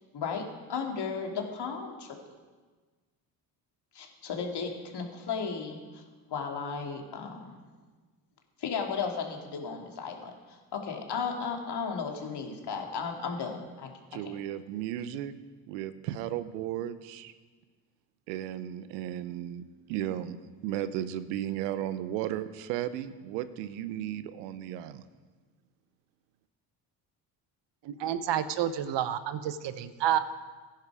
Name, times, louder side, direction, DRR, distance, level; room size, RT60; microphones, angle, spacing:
voice 1, 0.1-2.2 3.9-6.0 6.3-7.6 8.6-13.9, left 5 dB, 50° left, 2 dB, 2.8 m, -35 dB
voice 2, 14.1-15.3 15.7-17.3 18.3-19.6 19.9-20.4 20.6-25.0, right 11 dB, 85° right, 13 dB, 0.9 m, -35 dB
voice 3, 27.8-30.2, right 10 dB, 60° right, 13 dB, 1.1 m, -29 dB
16.5 x 10.5 x 4.9 m, 1.4 s
hypercardioid pair, 60°, 50 cm